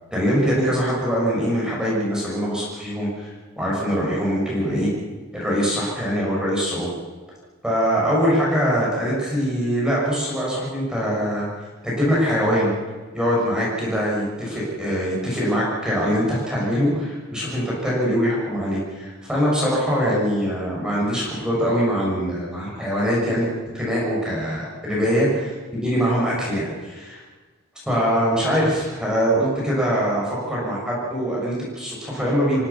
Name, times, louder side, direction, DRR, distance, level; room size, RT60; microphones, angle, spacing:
voice 1, 0.1-3.3 3.6-4.9 5.3-6.9 7.6-11.5 11.8-12.7 13.1-23.5 23.7-27.2 27.8-32.6, equal, 5° right, -6 dB, 6.6 m, -23 dB
26.0 x 16.0 x 7.1 m, 1.3 s
head